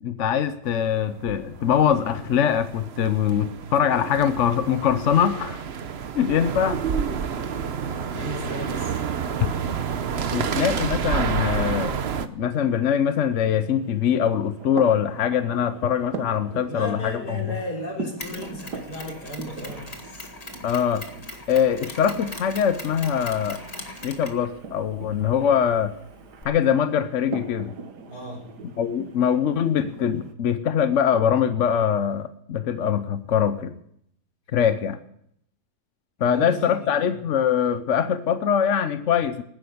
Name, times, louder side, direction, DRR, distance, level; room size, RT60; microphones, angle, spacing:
voice 1, 0.0-5.6 6.1-6.8 10.3-17.2 17.5-17.6 20.6-21.0 21.5-23.6 24.0-25.9 26.4-27.7 28.8-33.8 34.5-35.0 36.2-39.4, left 8 dB, 55° left, 11 dB, 1.0 m, -23 dB
sound 1, 0.7-12.3, right 7 dB, 50° right, 0.9 m, -29 dB
voice 2, 8.1-9.0 16.7-20.3 28.1-28.5 36.2-37.2, equal, 80° left, 0 dB, 4.3 m, -35 dB
sound 2, 12.4-30.3, right 4 dB, 90° right, 2.0 m, -41 dB
Mechanisms, 18.2-26.4, left 2 dB, 25° left, 1.8 m, -41 dB
18.0 x 10.0 x 7.0 m, 0.72 s
omnidirectional pair, 1.7 m